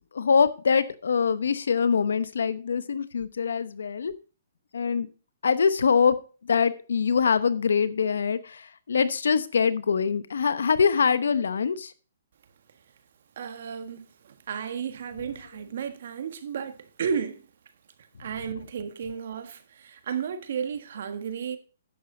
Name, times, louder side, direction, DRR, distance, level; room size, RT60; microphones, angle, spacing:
voice 1, 0.1-4.1 4.7-5.1 5.4-6.2 6.4-11.9, left 6 dB, 80° left, 0.9 m, -24 dB
voice 2, 13.4-17.4 18.0-21.6, right 7 dB, 65° right, 1.5 m, -33 dB
11.0 x 7.9 x 3.8 m
hypercardioid pair, 140°, 0 cm